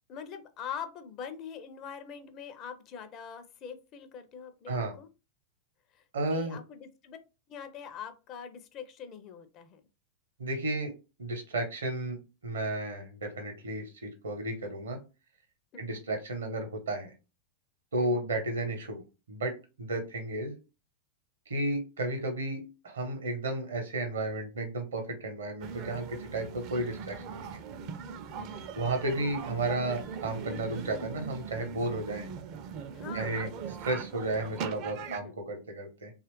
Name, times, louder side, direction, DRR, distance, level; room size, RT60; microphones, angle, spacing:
voice 1, 0.1-5.1 5.9-6.0 6.3-7.2 7.5-9.8 15.7-16.0 18.0-18.2 28.4-28.7 32.9-33.4 35.1-35.3, left 7 dB, 35° left, 9 dB, 0.5 m, -43 dB
voice 2, 6.1-6.6 10.4-10.9 11.2-12.2 12.4-15.0 15.8-17.1 17.9-19.0 19.3-19.5 19.8-20.6 21.5-27.6 28.8-32.3 33.1-33.5 33.8-36.1, right 2 dB, 70° right, 5 dB, 0.8 m, -33 dB
sound 1, 25.6-35.2, right 6 dB, 40° right, 0.4 m, -40 dB
2.9 x 2.4 x 3.0 m, 0.30 s
figure-of-eight pair, 90°, 0 cm